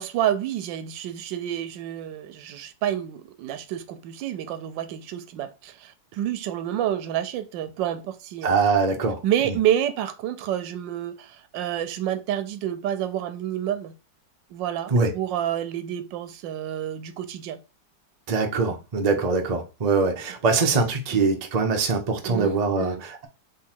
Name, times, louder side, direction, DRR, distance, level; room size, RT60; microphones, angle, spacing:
voice 1, 0.0-8.6 9.2-13.9 14.5-17.6 20.6-20.7 21.1-21.2 22.2-23.0, right 11 dB, 80° right, 1.3 m, -29 dB
voice 2, 8.4-9.5 14.9-15.1 18.3-23.3, right 4 dB, 55° right, 0.4 m, -23 dB
3.8 x 3.3 x 4.3 m
omnidirectional pair, 2.0 m